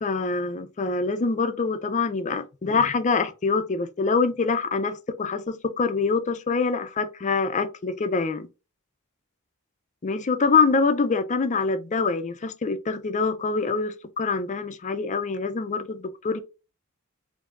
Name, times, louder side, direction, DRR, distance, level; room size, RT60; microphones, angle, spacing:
voice 1, 0.0-8.5 10.0-16.4, left 4 dB, 35° left, 0.5 m, -25 dB
4.6 x 2.7 x 2.4 m
head